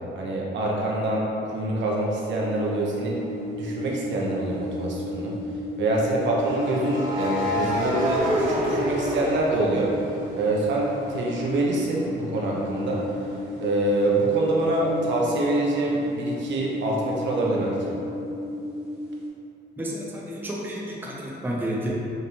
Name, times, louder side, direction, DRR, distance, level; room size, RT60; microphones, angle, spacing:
voice 1, 0.1-3.2 3.5-5.3 5.8-9.9 10.3-13.0 13.6-17.8, right 2 dB, 65° right, -3 dB, 0.8 m, -25 dB
sound 1, 2.4-19.3, left 2 dB, 55° left, 1.4 m, -34 dB
sound 2, 3.1-3.3 6.4-10.3 10.7-14.2, equal, 45° right, 1.2 m, -29 dB
voice 2, 19.8-21.9, equal, 10° right, -4 dB, 0.6 m, -31 dB
5.2 x 2.7 x 3.0 m, 2.8 s
cardioid pair, 90°, 20 cm